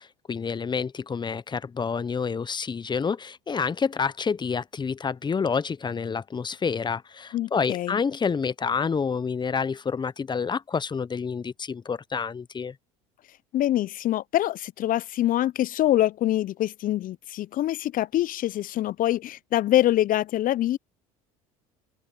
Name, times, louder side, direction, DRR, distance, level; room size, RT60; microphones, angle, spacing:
voice 1, 0.0-12.7, left 5 dB, 25° left, 1.1 m, -28 dB
voice 2, 7.3-8.0 13.5-20.8, left 13 dB, 45° left, 0.7 m, -25 dB
open air
hypercardioid pair, 75°, 19 cm